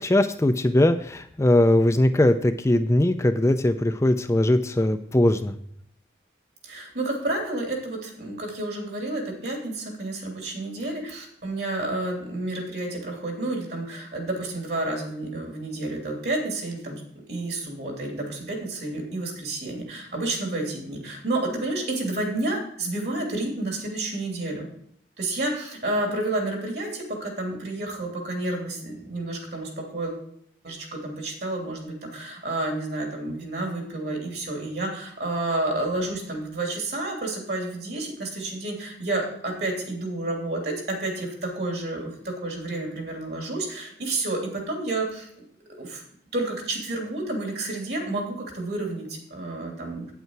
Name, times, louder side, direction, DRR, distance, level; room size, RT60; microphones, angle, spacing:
voice 1, 0.0-5.5, left 1 dB, 15° left, 9 dB, 0.4 m, -20 dB
voice 2, 6.6-17.0 17.3-24.7 25.2-30.2 30.6-40.7 41.0-44.4 44.7-45.3 45.8-46.0 46.3-50.1, right 2 dB, 65° right, 1 dB, 3.0 m, -30 dB
9.1 x 8.1 x 4.6 m, 0.67 s
head